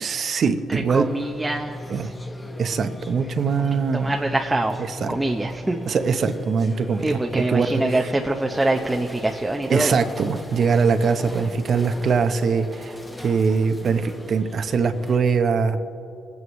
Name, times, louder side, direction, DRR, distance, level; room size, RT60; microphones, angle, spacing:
voice 1, 0.0-1.1 1.9-2.1 2.6-4.1 5.0-5.1 5.9-7.9 9.7-12.9 13.2-16.0, right 5 dB, 55° right, 9 dB, 0.9 m, -22 dB
voice 2, 0.7-2.1 3.6-4.8 5.1-5.8 7.0-10.0, right 2 dB, 15° right, 2 dB, 0.7 m, -25 dB
sound 1, 0.9-15.2, left 1 dB, 15° left, 1.1 m, -38 dB
26.5 x 9.6 x 3.2 m, 2.9 s
cardioid pair, 90°, 0 cm